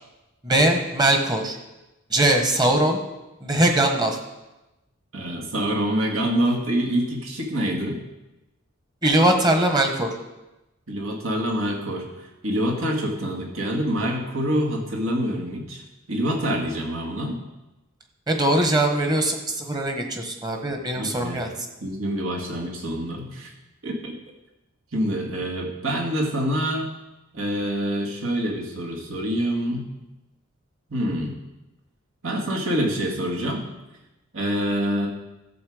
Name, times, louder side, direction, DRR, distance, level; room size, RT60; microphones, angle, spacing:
voice 1, 0.4-1.6 2.1-3.0 3.4-4.2 9.0-10.1 18.3-21.5, right 1 dB, 20° right, 4 dB, 1.3 m, -21 dB
voice 2, 5.1-8.0 10.9-17.4 21.0-21.4 21.8-23.5 23.8-24.1 24.9-26.9 27.3-29.9 30.9-31.3 32.2-33.7 34.3-35.1, equal, 70° right, 0 dB, 2.1 m, -26 dB
13.0 x 7.5 x 5.0 m, 1.0 s
head